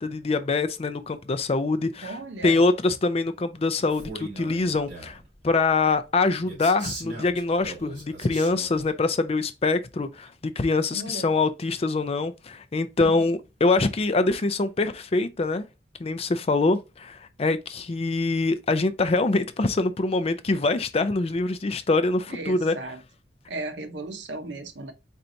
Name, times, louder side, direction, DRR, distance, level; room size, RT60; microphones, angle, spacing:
voice 1, 0.0-5.2 5.4-15.6 16.0-22.8, left 3 dB, 35° left, 0.4 m, -24 dB
voice 2, 2.0-2.6 10.9-11.3 13.0-13.1 22.3-23.0 23.5-24.9, right 2 dB, 80° right, 0.8 m, -35 dB
Male speech man speaking, 3.9-5.2 6.5-8.9, right 2 dB, 45° right, 2.9 m, -39 dB
4.4 x 4.0 x 2.6 m
head